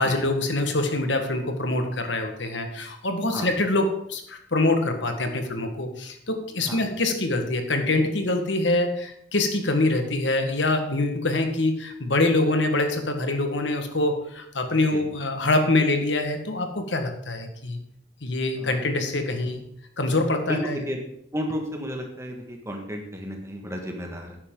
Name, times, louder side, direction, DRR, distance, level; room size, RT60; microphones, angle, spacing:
voice 1, 0.0-17.8 18.2-19.6 20.0-20.8, left 2 dB, 75° left, 5 dB, 1.6 m, -25 dB
voice 2, 20.5-21.0 21.3-24.4, equal, 15° right, 2 dB, 1.7 m, -32 dB
12.0 x 9.8 x 3.9 m, 0.73 s
head